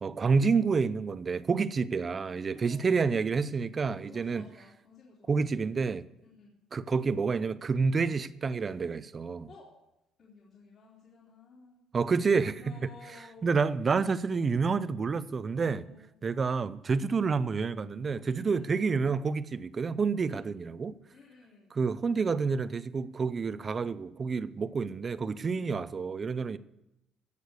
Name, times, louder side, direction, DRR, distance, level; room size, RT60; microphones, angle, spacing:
voice 1, 0.0-4.5 5.3-6.0 6.7-9.5 11.9-12.9 13.4-15.8 16.2-21.0 21.7-26.6, right 5 dB, 25° right, 0.5 m, -29 dB
voice 2, 2.5-3.4 4.1-5.4 6.2-6.5 9.5-9.7 10.2-11.8 12.6-13.5 15.6-16.0 17.2-17.4 18.4-18.8 20.3-20.5 21.1-21.7 25.5-25.7, left 4 dB, 45° left, 3.3 m, -54 dB
16.5 x 6.7 x 8.2 m
cardioid pair, 150°, 0 cm